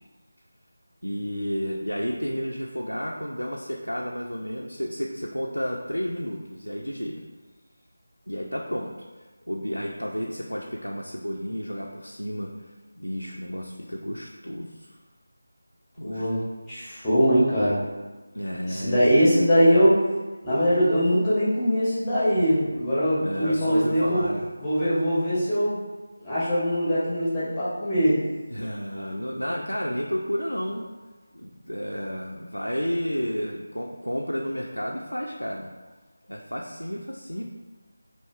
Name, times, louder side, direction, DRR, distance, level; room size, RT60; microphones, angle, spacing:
voice 1, 1.0-7.2 8.3-8.9 9.5-12.7 13.0-15.0 16.0-16.3 18.3-19.1 23.2-24.5 28.5-30.9 31.3-35.7 36.3-37.4, equal, 85° left, -2 dB, 0.3 m, -31 dB
voice 2, 16.0-16.4 16.7-17.8 18.6-20.0 20.4-24.3 24.6-25.8 26.2-28.2, equal, 10° left, -11 dB, 0.9 m, -22 dB
4.8 x 2.5 x 2.2 m, 1.3 s
figure-of-eight pair, 165°, 0 cm